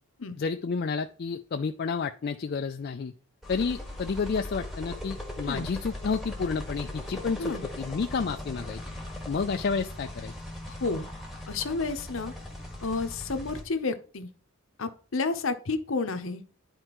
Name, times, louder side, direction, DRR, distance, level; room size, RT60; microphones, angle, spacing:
voice 1, 0.4-3.1 3.5-8.8 9.3-10.3, left 5 dB, 45° left, 6 dB, 0.3 m, -30 dB
sound 1, 3.4-13.6, left 1 dB, ahead, 1.5 m, -39 dB
voice 2, 11.5-12.3 12.8-14.3 14.8-16.4, left 3 dB, 60° left, 9 dB, 0.8 m, -30 dB
10.5 x 4.4 x 3.0 m, 0.42 s
head